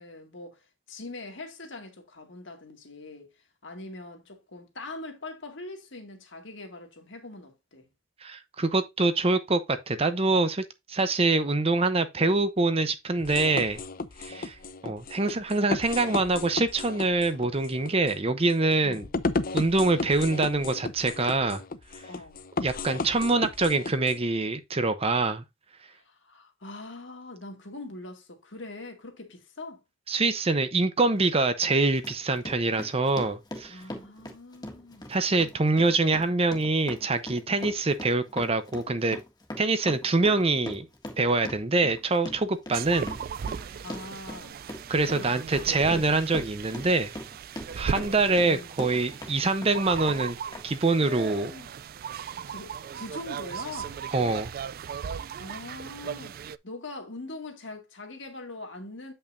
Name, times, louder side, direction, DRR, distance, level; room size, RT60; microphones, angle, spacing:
voice 1, 0.0-3.3 3.6-7.9 14.3-14.5 18.8-19.1 22.0-22.4 25.9-29.8 33.7-35.2 35.7-35.9 37.6-37.8 43.8-44.6 45.1-45.3 45.9-46.1 47.9-48.7 51.0-51.7 52.5-54.0 55.4-56.4 56.6-59.1, left 2 dB, 65° left, 2.2 m, -42 dB
voice 2, 8.2-13.8 14.2-14.6 14.8-19.0 19.5-21.6 22.6-25.4 30.1-33.8 35.1-39.2 39.6-40.9 41.2-43.1 44.9-47.1 47.8-50.4 50.6-51.5 54.1-54.5, right 3 dB, 30° right, 0.7 m, -25 dB
sound 1, 13.2-24.2, left 3 dB, 45° left, 0.6 m, -34 dB
Run, 31.0-31.2 31.6-49.3 49.6-50.2 50.5-50.6, left 1 dB, 20° left, 1.6 m, -41 dB
sound 2, 42.7-56.6, right 7 dB, 45° right, 0.3 m, -37 dB
8.7 x 5.6 x 2.6 m
head